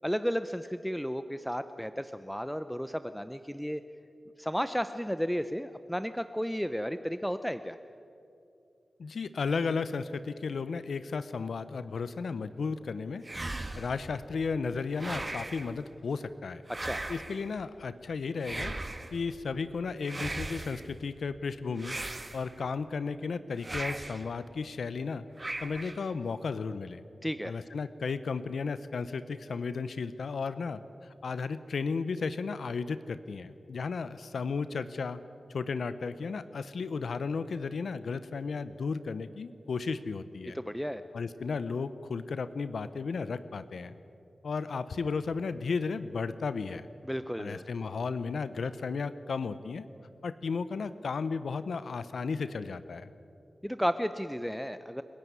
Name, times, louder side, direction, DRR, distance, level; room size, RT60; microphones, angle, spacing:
voice 1, 0.0-3.8 4.4-7.8 16.8-17.0 27.2-27.5 40.5-41.0 47.0-47.7 53.6-55.0, equal, ahead, 11 dB, 0.7 m, -33 dB
voice 2, 9.0-16.6 17.1-18.8 19.1-22.0 22.3-25.2 25.6-27.0 27.4-30.8 31.2-35.2 35.5-40.6 41.1-43.9 44.4-46.9 47.4-49.8 50.2-53.1, left 4 dB, 80° left, 14 dB, 0.7 m, -34 dB
sound 1, 13.2-14.0 14.9-15.7 16.7-17.5 18.4-19.2 20.0-20.9 21.8-22.7 23.6-24.3 25.4-26.1, right 2 dB, 35° right, 1.8 m, -38 dB
29.0 x 11.0 x 9.4 m, 2.7 s
cardioid pair, 40°, 0 cm